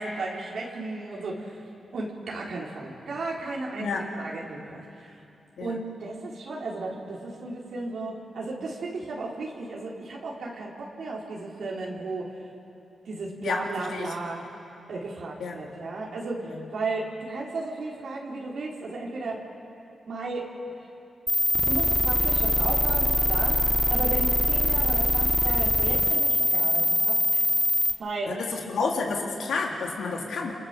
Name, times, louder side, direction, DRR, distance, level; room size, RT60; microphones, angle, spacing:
voice 1, 0.0-1.6 1.9-3.9 4.2-5.1 5.6-12.3 13.0-14.4 14.9-19.4 20.1-20.5 21.6-23.6 23.9-27.4 28.0-28.3, right 3 dB, 75° right, -4 dB, 3.8 m, -34 dB
voice 2, 13.4-14.1 15.4-15.6 16.4-16.7 28.3-30.5, left 4 dB, 80° left, 0 dB, 3.2 m, -30 dB
sound 1, 21.3-27.9, equal, 5° left, 2.3 m, -23 dB
28.5 x 25.5 x 6.8 m, 2.8 s
cardioid pair, 70°, 0 cm